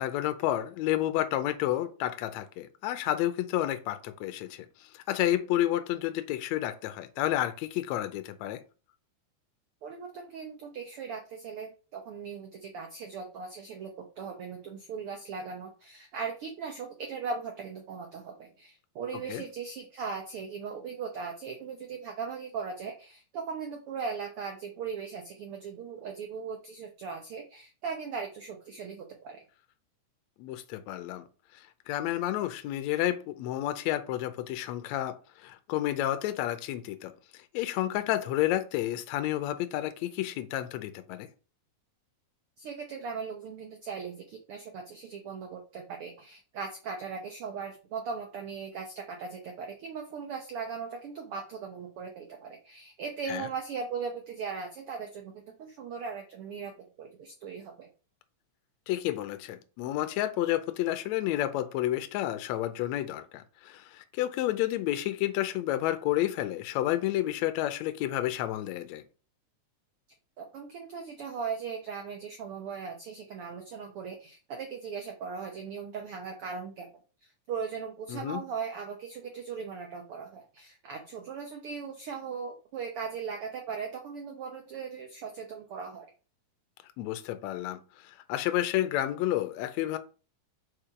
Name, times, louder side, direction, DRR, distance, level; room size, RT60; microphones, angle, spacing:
voice 1, 0.0-4.7 4.9-8.6 19.3-19.4 30.4-31.2 31.9-35.1 35.4-37.1 37.5-41.3 53.3-53.5 58.9-69.0 78.1-78.4 87.0-87.8 88.0-90.0, left 13 dB, 80° left, 1.7 m, -30 dB
voice 2, 9.8-29.4 42.6-57.9 70.4-76.9 77.2-86.1, right 5 dB, 80° right, 1.2 m, -38 dB
5.0 x 4.5 x 4.9 m
omnidirectional pair, 3.7 m